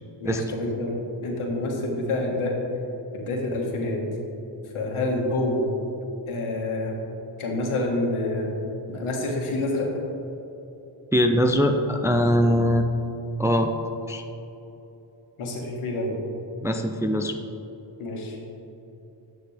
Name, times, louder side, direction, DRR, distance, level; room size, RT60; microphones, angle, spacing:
voice 1, 0.2-2.5 3.1-4.0 4.7-5.6 6.3-6.9 7.4-8.5 8.9-9.9 15.4-16.2 18.0-18.4, left 2 dB, 80° left, -1 dB, 1.7 m, -27 dB
voice 2, 11.1-12.9 13.4-13.7 14.1-14.2 16.6-17.3, equal, 5° right, 5 dB, 0.3 m, -21 dB
9.7 x 6.5 x 3.4 m, 3.0 s
cardioid pair, 90°, 49 cm